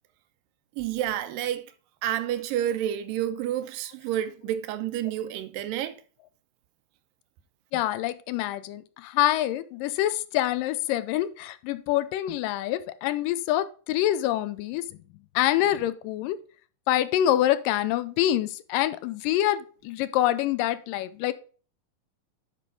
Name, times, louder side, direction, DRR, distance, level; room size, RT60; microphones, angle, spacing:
voice 1, 0.8-1.6 2.0-6.0, right 11 dB, 90° right, 2.4 m, -29 dB
voice 2, 7.7-14.9 15.4-16.4 16.9-21.3, left 13 dB, 80° left, 2.2 m, -26 dB
10.0 x 5.0 x 3.8 m
omnidirectional pair, 4.0 m